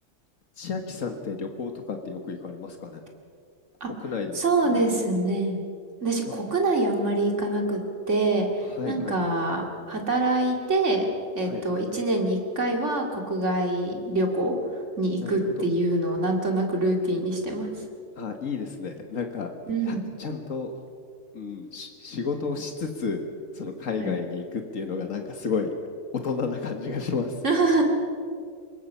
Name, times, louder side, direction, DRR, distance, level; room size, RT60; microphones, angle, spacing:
voice 1, 0.6-3.0 4.0-4.8 8.7-9.2 11.4-11.6 15.2-15.3 18.1-19.5 19.8-20.7 21.3-23.2 23.5-25.7 26.2-27.4, left 5 dB, 80° left, 4 dB, 1.8 m, -32 dB
voice 2, 4.3-5.6 6.0-7.8 8.1-14.5 15.0-17.7 19.7-20.0 24.0-24.1 27.4-27.8, right 2 dB, 65° right, 2 dB, 2.9 m, -25 dB
25.0 x 21.0 x 5.6 m, 2.3 s
omnidirectional pair, 1.3 m